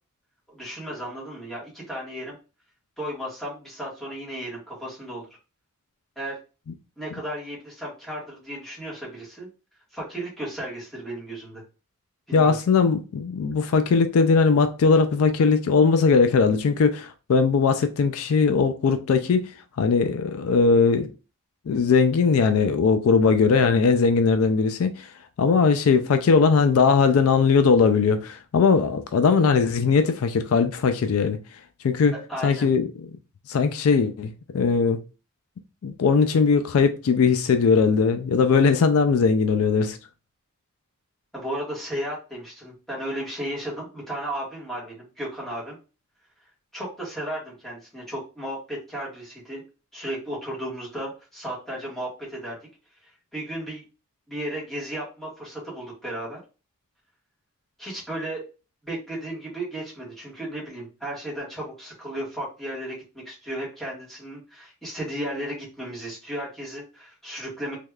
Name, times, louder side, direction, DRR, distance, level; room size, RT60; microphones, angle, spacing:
voice 1, 0.5-2.4 3.0-5.3 6.1-6.4 7.0-9.5 9.9-11.6 12.3-12.6 32.1-32.7 41.3-45.8 46.7-49.6 49.9-52.6 53.0-53.8 54.3-56.4 57.8-58.4 58.8-67.8, right 1 dB, ahead, 1.5 m, -34 dB
voice 2, 12.3-21.1 21.7-25.1 25.4-31.4 31.8-32.1 32.4-32.9 33.5-35.0 35.8-40.0, left 5 dB, 70° left, 0.4 m, -20 dB
3.4 x 3.1 x 2.3 m
head